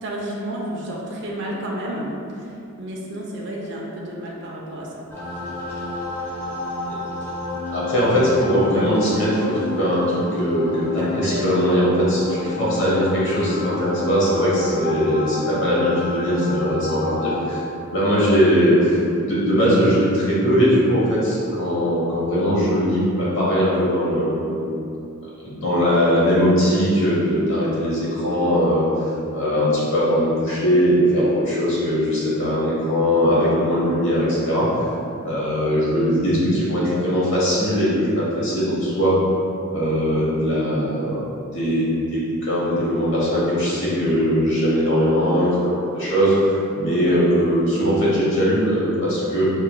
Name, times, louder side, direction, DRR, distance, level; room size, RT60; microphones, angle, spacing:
voice 1, 0.0-2.1 2.8-5.1 11.0-11.4 12.4-12.6 47.1-47.2, right 1 dB, 50° right, -3 dB, 0.5 m, -31 dB
sound 1, 5.1-17.5, left 2 dB, 10° left, 0.8 m, -30 dB
voice 2, 7.7-17.6 17.9-19.0 19.2-24.8 25.4-28.9 29.3-34.7 35.2-39.2 39.7-41.2 41.5-49.5, equal, 55° left, -8 dB, 1.0 m, -20 dB
5.3 x 3.0 x 2.3 m, 2.7 s
head